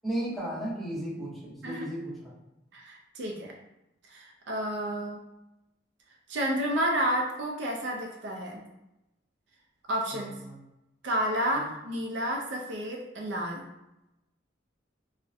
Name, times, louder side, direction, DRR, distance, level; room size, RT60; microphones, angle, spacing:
voice 1, 0.0-2.3 10.1-10.6 11.6-11.7, right 1 dB, ahead, -8 dB, 0.7 m, -35 dB
voice 2, 2.7-3.5 4.1-5.2 6.3-8.6 9.9-10.3 11.0-13.7, equal, 65° right, 0 dB, 0.4 m, -31 dB
2.6 x 2.0 x 2.5 m, 0.93 s
head